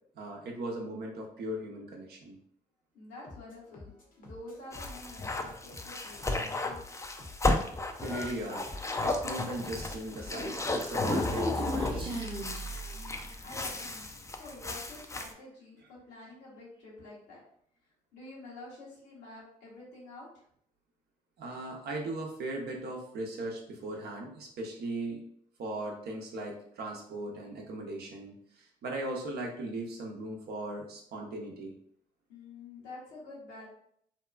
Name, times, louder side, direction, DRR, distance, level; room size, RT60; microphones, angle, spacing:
voice 1, 0.1-2.4 8.0-8.7 9.0-12.3 21.4-25.2 25.6-31.7, right 1 dB, 65° right, 0 dB, 0.7 m, -38 dB
voice 2, 2.9-6.8 12.9-17.4 18.1-20.4 32.3-33.7, left 2 dB, 80° left, -6 dB, 1.0 m, -48 dB
sound 1, 3.2-11.0, left 3 dB, 50° left, 0.8 m, -52 dB
sound 2, 4.7-15.3, left 2 dB, 15° left, 0.4 m, -34 dB
Human voice, 10.5-13.5, right 1 dB, 30° right, 0.7 m, -36 dB
2.7 x 2.3 x 2.3 m, 0.67 s
hypercardioid pair, 45°, 18 cm